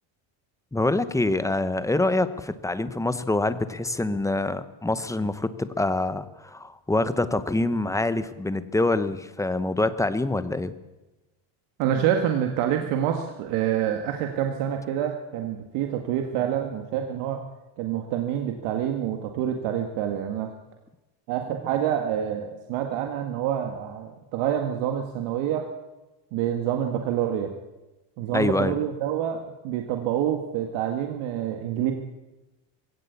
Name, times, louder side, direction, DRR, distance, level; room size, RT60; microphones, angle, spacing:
voice 1, 0.7-10.7 28.3-28.8, left 2 dB, 5° left, 12 dB, 0.9 m, -25 dB
voice 2, 11.8-17.4 17.8-20.5 21.3-25.7 26.3-27.5 28.2-31.9, right 10 dB, 90° right, 4 dB, 2.2 m, -27 dB
21.0 x 17.0 x 8.5 m, 1.0 s
cardioid pair, 150°, 50 cm